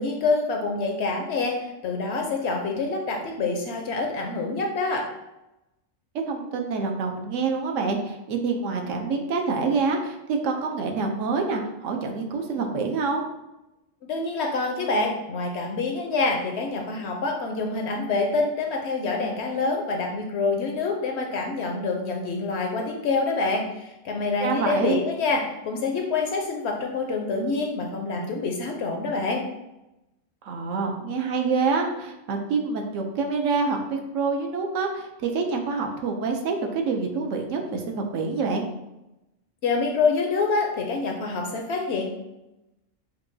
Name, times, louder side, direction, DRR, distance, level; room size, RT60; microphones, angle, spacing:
voice 1, 0.0-1.6 1.8-5.1 14.1-29.4 39.6-42.1, left 3 dB, 65° left, 2 dB, 0.7 m, -26 dB
voice 2, 6.1-13.2 24.4-25.0 30.4-38.7, right 4 dB, 70° right, 3 dB, 0.9 m, -26 dB
5.6 x 2.2 x 2.6 m, 0.93 s
omnidirectional pair, 1.4 m